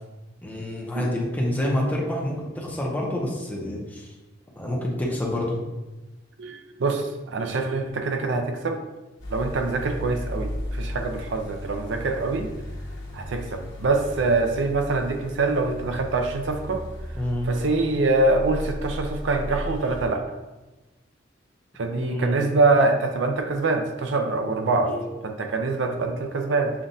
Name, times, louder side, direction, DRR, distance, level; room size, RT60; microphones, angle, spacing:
voice 1, 0.4-4.1 4.6-5.6 17.1-17.5 22.0-22.5 24.8-25.1, left 1 dB, 10° left, -3 dB, 0.8 m, -28 dB
voice 2, 6.4-8.8 9.3-12.5 13.1-16.8 17.5-20.2 21.8-24.9 25.2-26.7, right 3 dB, 70° right, 4 dB, 0.5 m, -24 dB
sound 1, 9.2-20.1, left 1 dB, 70° left, 1.3 m, -35 dB
7.1 x 2.4 x 2.7 m, 1.1 s
head